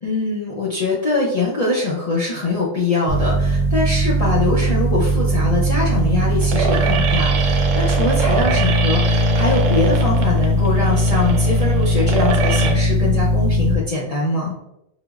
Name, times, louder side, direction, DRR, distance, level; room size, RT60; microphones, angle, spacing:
voice 1, 0.0-14.5, left 3 dB, 75° left, -6 dB, 0.3 m, -23 dB
sound 1, 3.1-13.7, right 1 dB, 55° right, 0.5 m, -18 dB
sound 2, 5.2-12.7, right 4 dB, 75° right, 1.0 m, -25 dB
4.8 x 2.0 x 2.3 m, 0.86 s
omnidirectional pair, 1.4 m